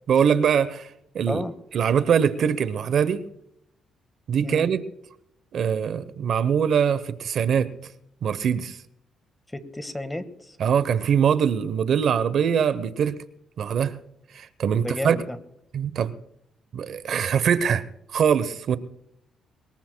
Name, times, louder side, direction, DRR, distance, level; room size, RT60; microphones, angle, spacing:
voice 1, 0.1-0.9 1.1-1.4 1.7-3.3 4.3-4.8 5.5-7.7 8.2-8.8 10.6-13.2 13.6-14.0 14.3-15.2 15.7-16.1 16.7-17.8 18.1-18.8, right 7 dB, 65° right, 0.9 m, -22 dB
voice 2, 9.5-10.6 14.7-15.4, left 1 dB, 10° left, 1.5 m, -32 dB
23.0 x 21.0 x 2.3 m
cardioid pair, 90°, 0 cm